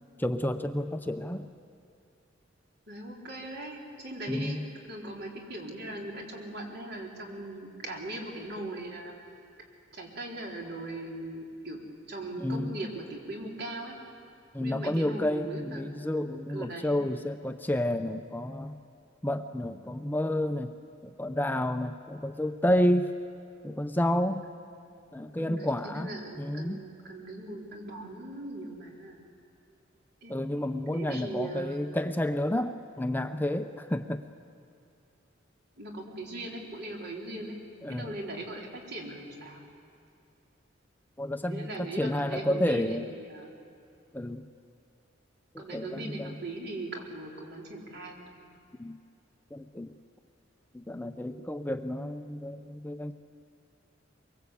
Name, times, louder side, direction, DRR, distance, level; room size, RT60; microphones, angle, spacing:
voice 1, 0.2-1.5 4.3-4.7 12.4-12.8 14.5-18.8 19.2-20.7 21.0-23.1 23.6-24.4 25.1-26.8 30.3-34.3 37.8-38.1 41.2-41.7 42.0-43.1 44.1-44.5 45.5-46.4 48.8-49.0 49.5-49.9 50.7-53.1, left 1 dB, 10° left, 8 dB, 0.6 m, -30 dB
voice 2, 2.9-4.6 4.9-9.1 9.9-11.8 12.1-14.0 14.6-15.9 16.5-17.0 25.4-29.2 30.2-30.5 30.9-31.8 35.8-37.6 37.9-39.6 41.5-43.5 45.6-48.3, right 2 dB, 60° right, -1 dB, 4.2 m, -39 dB
23.5 x 23.0 x 8.4 m, 2.4 s
head